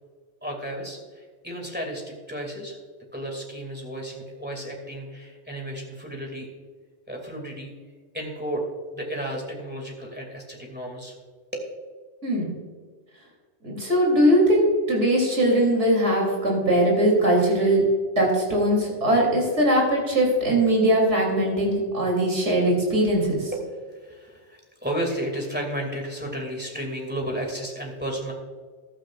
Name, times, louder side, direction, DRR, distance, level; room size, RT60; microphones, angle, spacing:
voice 1, 0.4-2.0 2.3-2.8 3.1-6.5 7.1-7.7 8.1-8.6 8.9-11.1 11.5-11.7 23.5-23.6 23.9-28.3, right 1 dB, 10° right, 0 dB, 2.4 m, -33 dB
voice 2, 13.6-17.8 18.2-23.5, right 1 dB, 80° right, -2 dB, 3.6 m, -21 dB
15.0 x 12.5 x 2.5 m, 1.5 s
omnidirectional pair, 1.2 m